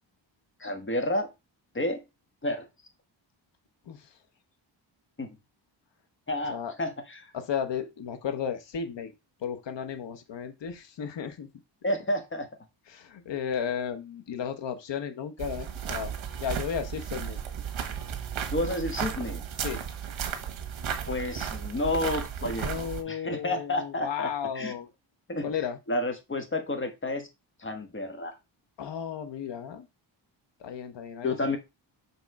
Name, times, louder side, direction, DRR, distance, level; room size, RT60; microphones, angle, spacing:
voice 1, 0.6-1.3 1.7-2.0 2.4-2.7 5.2-5.4 6.3-7.3 11.8-12.5 18.5-19.4 21.1-24.7 25.3-25.5 25.9-27.3 27.6-28.4 31.2-31.6, left 1 dB, 25° left, 1.4 m, -30 dB
voice 2, 7.3-9.1 9.4-11.5 12.9-16.1 16.4-17.4 19.6-19.8 22.6-24.9 25.4-25.8 28.8-29.9 30.6-31.6, left 8 dB, 65° left, 1.2 m, -34 dB
sound 1, 15.4-23.0, right 8 dB, 80° right, 1.4 m, -34 dB
6.8 x 3.5 x 4.8 m
wide cardioid pair, 155°, 46 cm